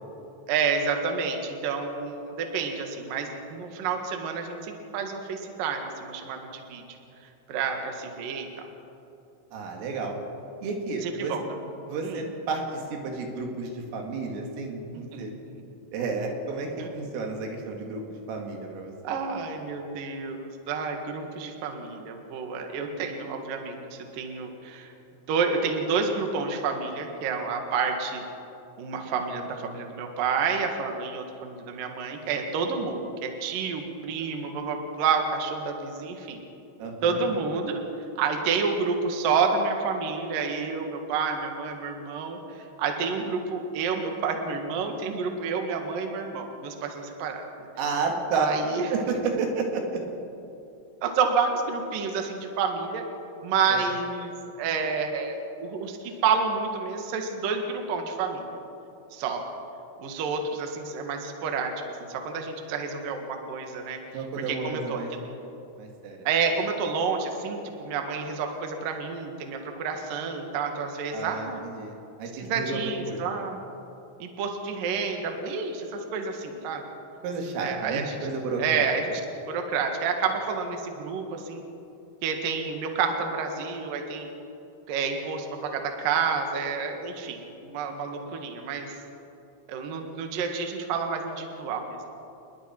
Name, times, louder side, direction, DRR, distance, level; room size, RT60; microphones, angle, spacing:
voice 1, 0.5-6.8 7.5-8.5 11.0-11.5 12.0-12.2 15.1-15.6 16.8-16.9 19.0-24.9 25.3-28.3 28.8-36.4 37.0-37.8 38.2-42.4 42.8-47.7 48.3-48.9 51.0-53.0 53.4-58.4 59.1-59.5 60.0-61.7 62.1-64.0 64.5-65.2 66.2-71.6 72.4-73.6 74.2-76.8 77.6-78.0 78.6-79.0 79.5-81.6 82.2-84.3 84.9-87.4 87.6-88.9 89.7-92.0, right 5 dB, 55° right, 4 dB, 2.8 m, -29 dB
voice 2, 9.5-10.2 10.6-11.4 11.8-15.3 15.9-19.1 36.8-37.2 47.8-48.5 48.9-50.0 53.7-53.9 64.1-65.1 65.8-66.3 71.1-73.4 77.2-78.8, right 4 dB, 85° right, 1 dB, 5.0 m, -32 dB
28.5 x 21.0 x 4.6 m, 2.8 s
omnidirectional pair, 5.7 m